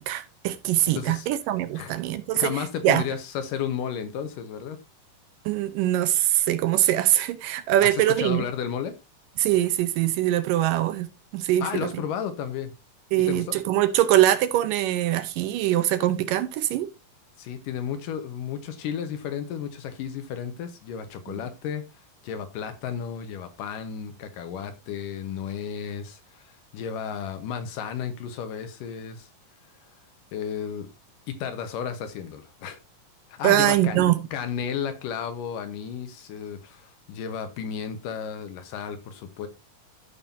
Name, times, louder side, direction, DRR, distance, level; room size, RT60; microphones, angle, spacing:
voice 1, 0.0-2.5 2.8-3.0 5.5-8.4 9.4-11.1 11.3-11.7 13.1-16.9 21.3-21.4 33.4-34.2, right 13 dB, 80° right, 2.4 m, -23 dB
voice 2, 0.9-1.3 1.8-1.9 2.3-4.8 7.8-8.9 11.6-12.7 13.3-13.6 17.4-21.8 22.2-29.3 30.3-30.9 31.3-32.8 33.3-39.5, left 8 dB, 80° left, 2.6 m, -33 dB
14.0 x 5.5 x 2.7 m
omnidirectional pair, 3.9 m